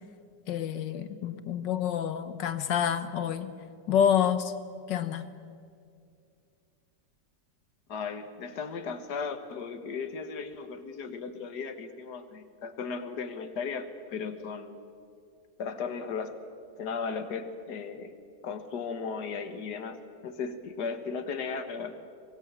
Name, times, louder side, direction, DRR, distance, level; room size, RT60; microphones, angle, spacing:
voice 1, 0.5-3.5 3.9-4.5 4.9-5.2, left 9 dB, 85° left, 11 dB, 1.8 m, -28 dB
voice 2, 7.9-14.9 15.6-16.3 16.8-18.1 18.4-20.0 20.2-22.1, left 5 dB, 65° left, 8 dB, 2.0 m, -36 dB
24.5 x 21.0 x 7.3 m, 2.4 s
omnidirectional pair, 1.9 m